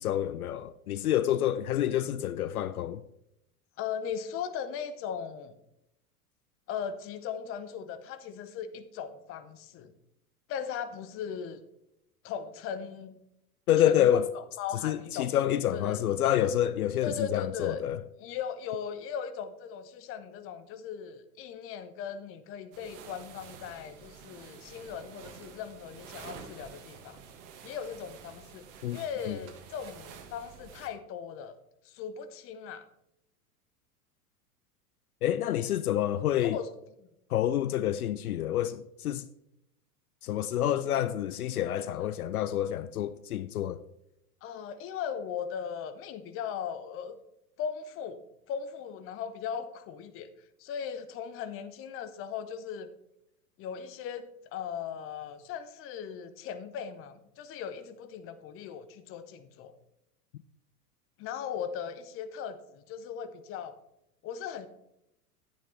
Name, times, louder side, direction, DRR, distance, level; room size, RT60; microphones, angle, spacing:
voice 1, 0.0-3.0 13.7-14.3 14.8-18.0 28.8-29.0 29.3-29.4 35.2-36.6 37.3-39.2 40.2-43.8, left 11 dB, 70° left, 0.5 m, -28 dB
voice 2, 3.8-5.5 6.7-9.9 10.5-11.6 12.2-13.2 13.8-15.3 15.7-16.0 17.0-17.8 18.2-27.2 27.6-28.7 28.9-31.5 31.8-32.9 36.4-36.7 37.0-37.1 41.5-42.1 44.4-47.2 47.6-50.3 50.6-52.9 53.6-59.7 61.2-63.8 64.2-64.7, left 7 dB, 30° left, 0.8 m, -38 dB
sound 1, 22.7-30.9, right 6 dB, 45° right, 1.5 m, -49 dB
10.0 x 9.0 x 3.2 m
figure-of-eight pair, 90°, 46 cm